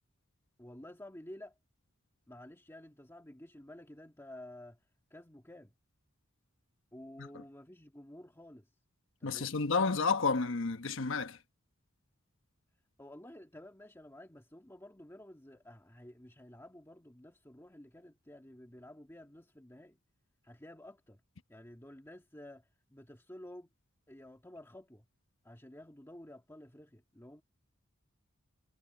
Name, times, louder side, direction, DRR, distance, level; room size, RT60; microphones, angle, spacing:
voice 1, 0.6-1.6 2.3-5.7 6.9-8.7 9.2-9.7 13.0-20.0 20.4-21.2 21.5-23.7 24.1-25.1 25.4-27.4, left 1 dB, 10° left, 1.9 m, -52 dB
voice 2, 9.2-11.4, left 4 dB, 65° left, 1.2 m, -31 dB
head